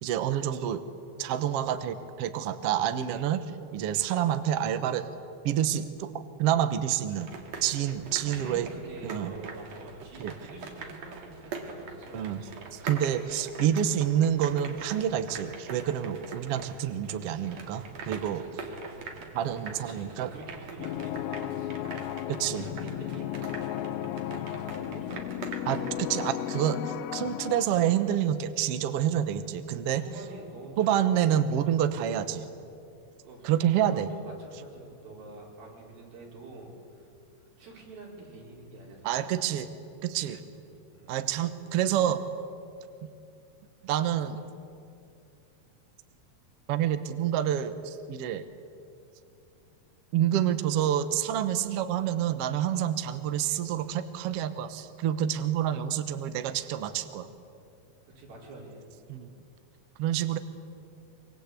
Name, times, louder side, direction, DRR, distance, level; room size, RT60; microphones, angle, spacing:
voice 1, 0.0-0.8 1.2-3.4 3.7-5.1 5.4-6.1 6.4-7.3 7.6-8.7 9.0-9.3 10.2-10.3 12.1-12.4 12.7-18.4 19.3-20.3 22.3-22.6 25.7-26.8 27.1-30.0 30.8-32.4 33.4-34.1 39.0-39.7 40.0-40.4 41.1-42.2 43.0-43.1 43.8-44.4 46.7-48.4 50.1-57.3 59.1-59.3 60.0-60.4, right 10 dB, 65° right, 10 dB, 1.5 m, -28 dB
sound 1, 7.2-26.0, right 4 dB, 50° right, 3.2 m, -43 dB
voice 2, 8.2-12.7 18.4-19.4 19.8-25.5 26.2-26.3 29.6-30.9 33.2-33.5 33.8-37.1 37.6-39.4 40.2-40.6 40.9-41.3 48.4-48.7 58.2-58.8, right 3 dB, 90° right, -2 dB, 6.4 m, -47 dB
sound 2, 20.8-28.2, left 12 dB, 85° left, 2.6 m, -35 dB
25.0 x 23.5 x 8.3 m, 2.5 s
omnidirectional pair, 4.1 m